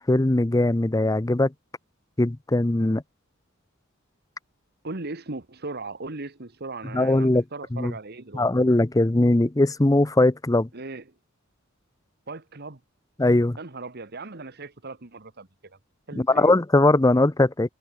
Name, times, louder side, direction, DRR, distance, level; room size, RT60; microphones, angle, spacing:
voice 1, 0.1-1.5 2.2-3.0 6.9-7.4 7.7-7.9 8.3-10.7 13.2-13.6 16.1-17.7, left 2 dB, 15° left, 0.6 m, -20 dB
voice 2, 4.8-8.5 10.7-11.1 12.3-12.8 13.6-15.8 16.1-16.5, right 3 dB, 50° right, 1.7 m, -38 dB
head